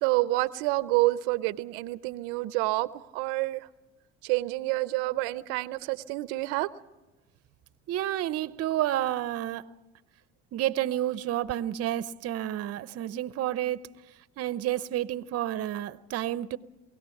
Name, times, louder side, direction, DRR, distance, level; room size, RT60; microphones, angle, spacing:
voice 1, 0.0-3.7 4.2-6.7, right 19 dB, 85° right, 0.7 m, -28 dB
voice 2, 7.9-9.7 10.5-13.9 14.4-16.6, right 13 dB, 50° right, 0.8 m, -30 dB
23.0 x 17.0 x 7.1 m
supercardioid pair, 105°, 32 cm